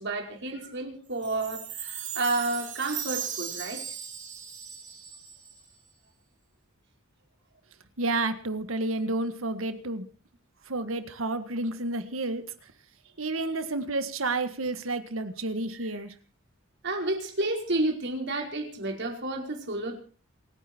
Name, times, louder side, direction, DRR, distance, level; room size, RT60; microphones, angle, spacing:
voice 1, 0.0-3.9 15.7-15.9 16.8-20.0, right 2 dB, 60° right, 2 dB, 5.0 m, -31 dB
Chime, 1.2-5.7, right 9 dB, 40° right, 3.3 m, -37 dB
voice 2, 8.0-10.0 10.7-12.4 13.2-16.1, right 2 dB, 85° right, 10 dB, 1.8 m, -30 dB
27.5 x 9.9 x 4.6 m, 0.39 s
head